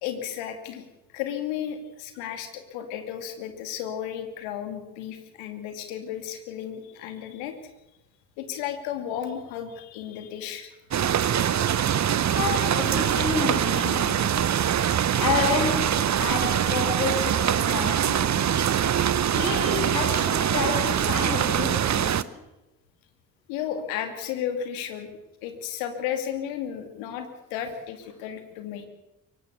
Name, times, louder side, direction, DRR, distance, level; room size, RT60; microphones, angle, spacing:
voice 1, 0.0-0.9 1.1-7.5 8.4-10.7 23.5-25.1 25.4-28.9, left 9 dB, 65° left, 7 dB, 2.7 m, -33 dB
sound 1, 10.9-22.2, right 9 dB, 35° right, 1.0 m, -23 dB
voice 2, 12.3-14.4 15.2-18.8 19.3-22.2, left 4 dB, 90° left, 3 dB, 2.0 m, -30 dB
23.5 x 17.5 x 6.8 m, 0.99 s
figure-of-eight pair, 45°, 50 cm